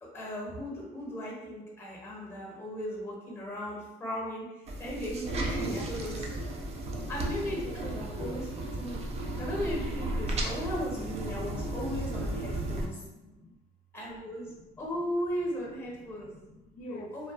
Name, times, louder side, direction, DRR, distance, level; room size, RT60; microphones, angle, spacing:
voice 1, 0.0-6.4 7.1-8.5 8.8-9.0 9.3-13.0 13.9-16.3 16.8-17.3, equal, 15° left, -3 dB, 0.8 m, -37 dB
sound 1, 4.7-12.9, right 1 dB, 40° right, 0.4 m, -34 dB
voice 2, 6.6-7.0 7.4-9.5 12.4-13.6 14.5-14.7 15.9-17.1, left 3 dB, 55° left, 4 dB, 0.4 m, -49 dB
2.6 x 2.2 x 2.3 m, 1.0 s
cardioid pair, 110°, 17 cm